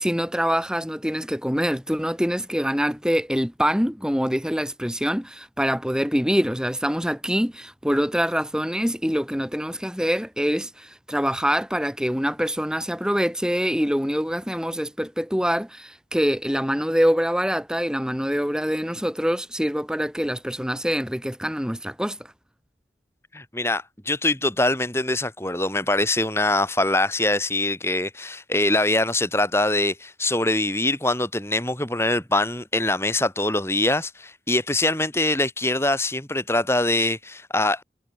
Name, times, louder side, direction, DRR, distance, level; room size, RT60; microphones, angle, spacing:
voice 1, 0.0-22.3, equal, 5° right, 5.9 m, -25 dB
voice 2, 23.3-37.8, left 2 dB, 15° left, 7.5 m, -23 dB
head